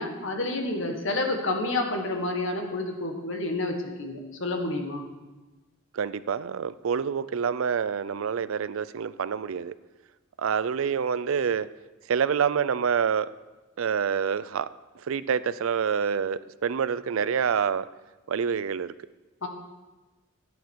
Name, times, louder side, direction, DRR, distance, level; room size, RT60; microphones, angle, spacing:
voice 1, 0.0-5.0 19.4-19.5, left 2 dB, 65° left, 3 dB, 1.7 m, -29 dB
voice 2, 5.9-9.7 10.4-11.7 12.1-13.3 13.8-14.7 15.0-17.9 18.3-18.9, right 7 dB, 70° right, 16 dB, 0.4 m, -27 dB
15.0 x 9.3 x 4.7 m, 1.2 s
head